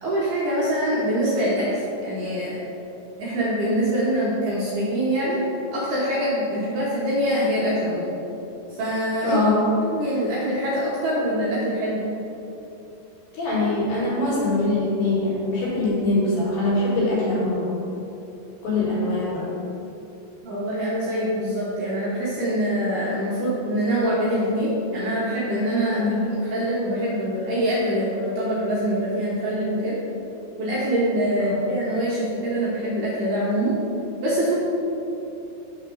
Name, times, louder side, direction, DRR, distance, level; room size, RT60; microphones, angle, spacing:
voice 1, 0.0-2.6 3.2-5.4 5.7-8.1 8.8-9.4 9.8-12.0 20.4-30.0 30.6-33.8 34.2-34.6, equal, 70° right, -8 dB, 2.1 m, -24 dB
voice 2, 9.2-9.7 13.3-17.8 18.6-19.5 25.9-26.2 31.4-31.6, left 2 dB, 65° left, -7 dB, 3.1 m, -23 dB
6.1 x 4.4 x 6.1 m, 2.9 s
omnidirectional pair, 4.7 m